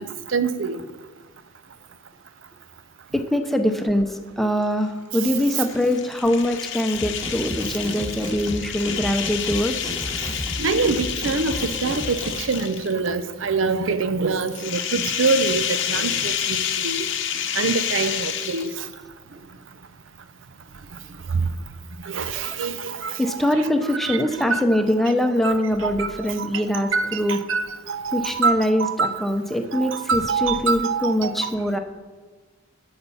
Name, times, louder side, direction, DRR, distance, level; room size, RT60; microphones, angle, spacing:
voice 1, 0.3-0.8 5.2-5.3 10.6-17.1 17.5-18.9 21.3-21.5 22.0-24.8 25.4-29.3 29.7-31.5, right 4 dB, 70° right, 0.6 m, -25 dB
voice 2, 3.1-9.9 23.2-27.4 28.1-31.8, left 1 dB, ahead, 0.8 m, -23 dB
sound 1, 5.3-13.1 14.5-18.9, left 9 dB, 65° left, 0.9 m, -29 dB
sound 2, 7.0-12.4, equal, 25° right, 2.1 m, -33 dB
12.5 x 6.8 x 5.5 m
head